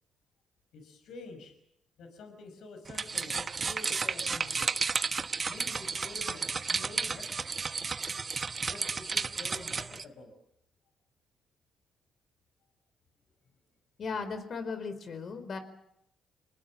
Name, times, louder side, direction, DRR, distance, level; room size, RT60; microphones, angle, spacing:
voice 1, 0.7-1.5 2.0-4.8 5.5-7.4 8.7-10.3, left 3 dB, 70° left, 6 dB, 5.5 m, -48 dB
sound 1, 2.9-10.0, right 5 dB, 40° right, 1.1 m, -33 dB
voice 2, 14.0-15.6, left 4 dB, 55° left, 10 dB, 4.5 m, -36 dB
27.5 x 20.0 x 7.3 m, 0.75 s
supercardioid pair, 55°, 0 cm